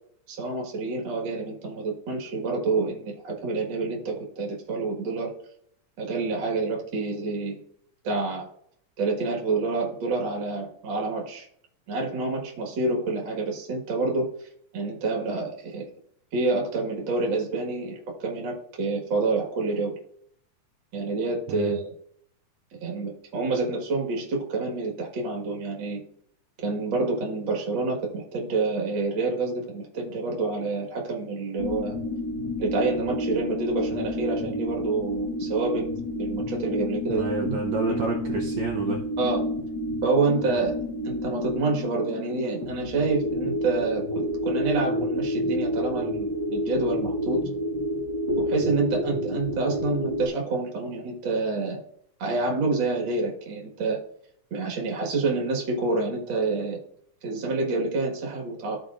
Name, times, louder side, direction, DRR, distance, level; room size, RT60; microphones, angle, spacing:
voice 1, 0.3-5.3 6.0-7.6 8.0-8.5 9.0-11.5 11.9-14.3 14.7-15.9 16.3-19.9 20.9-21.9 22.7-26.0 26.6-31.9 32.6-35.9 36.2-37.6 37.9-38.1 39.2-39.4 40.0-40.8 41.0-47.4 48.4-51.8 52.2-54.0 54.5-56.8 57.2-58.8, right 3 dB, 45° right, 0 dB, 1.9 m, -28 dB
sound 1, 31.6-50.3, left 1 dB, 50° left, 1.7 m, -29 dB
voice 2, 37.1-39.1, right 4 dB, 70° right, 0 dB, 1.9 m, -29 dB
14.0 x 4.8 x 2.5 m, 0.69 s
omnidirectional pair, 3.6 m